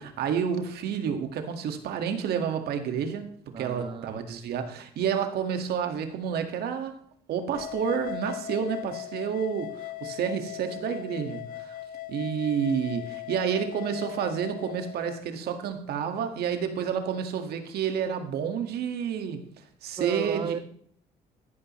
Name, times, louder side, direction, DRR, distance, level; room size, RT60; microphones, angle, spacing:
voice 1, 0.0-6.9 7.3-11.8 12.1-19.5 19.8-20.6, right 7 dB, 70° right, 1.8 m, -30 dB
voice 2, 3.5-4.2 20.0-20.6, right 6 dB, 30° right, 0.6 m, -33 dB
sound 1, 7.5-15.2, left 14 dB, 60° left, 0.6 m, -39 dB
14.0 x 11.5 x 3.1 m
cardioid pair, 110°, 17 cm